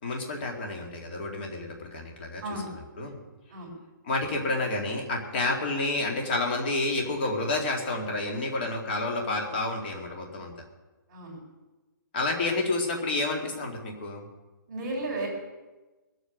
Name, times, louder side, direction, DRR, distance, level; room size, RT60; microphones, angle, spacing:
voice 1, 0.0-2.6 3.0-3.2 4.0-10.5 12.1-14.2, left 2 dB, 30° left, 2 dB, 2.2 m, -29 dB
voice 2, 14.7-15.3, right 2 dB, 20° right, -3 dB, 3.4 m, -33 dB
20.5 x 8.1 x 6.5 m, 1.2 s
hypercardioid pair, 175°, 11 cm